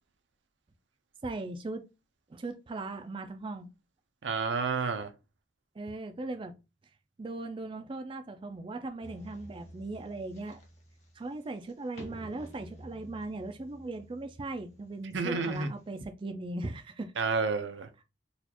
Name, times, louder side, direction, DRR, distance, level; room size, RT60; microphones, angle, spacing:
voice 1, 1.2-1.8 2.3-3.7 5.8-6.5 7.2-10.6 11.1-17.1, right 2 dB, 30° right, 0.3 m, -38 dB
voice 2, 4.2-5.1 15.1-15.7 17.2-18.0, right 4 dB, 80° right, 0.6 m, -30 dB
sound 1, 9.0-16.0, right 1 dB, 40° left, 1.1 m, -51 dB
4.1 x 2.4 x 2.8 m
head